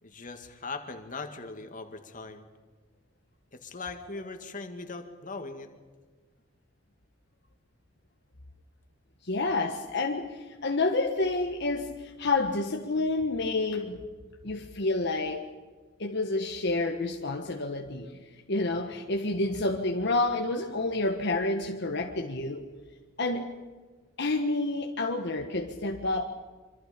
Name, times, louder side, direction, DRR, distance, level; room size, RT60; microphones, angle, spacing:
voice 1, 0.0-2.4 3.5-5.7, left 3 dB, 45° left, 6 dB, 2.2 m, -40 dB
voice 2, 9.2-14.0 14.4-15.5 16.0-18.2 18.5-22.6 23.2-23.5 24.2-26.2, left 2 dB, 60° left, 2 dB, 1.5 m, -29 dB
26.5 x 25.0 x 5.3 m, 1.4 s
head